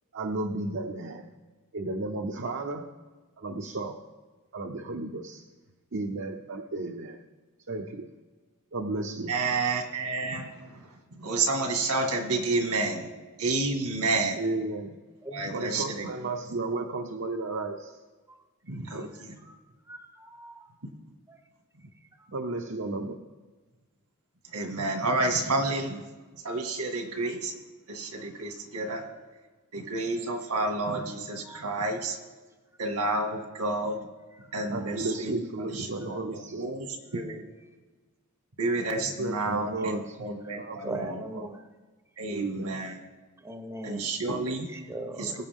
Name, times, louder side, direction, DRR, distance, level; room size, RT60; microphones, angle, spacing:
voice 1, 0.1-1.3 1.7-2.9 3.4-4.1 4.5-5.5 5.9-7.2 7.7-8.1 8.7-9.3 14.4-15.0 15.4-18.0 18.9-19.1 22.3-23.2 34.7-36.7 39.0-40.2 40.6-41.0 41.3-41.5 42.3-42.8, right 2 dB, 60° right, 3 dB, 0.8 m, -33 dB
voice 2, 9.3-10.8 11.2-13.1 13.4-14.4 15.3-16.0 18.7-19.3 24.5-26.0 26.4-27.5 27.9-29.0 29.7-32.2 32.8-34.0 34.5-35.3 35.6-36.2 36.6-36.9 37.1-37.4 38.6-41.2 42.2-43.0 43.8-44.7 45.2-45.4, right 3 dB, 85° right, 3 dB, 2.0 m, -30 dB
voice 3, 15.2-15.6 19.4-19.6 19.8-20.7 21.3-21.4 22.2-22.3 31.5-31.7 39.8-39.9 40.4-41.7 43.4-44.2 44.7-45.4, right 1 dB, 10° right, 6 dB, 0.8 m, -40 dB
21.5 x 8.2 x 3.6 m, 1.3 s
head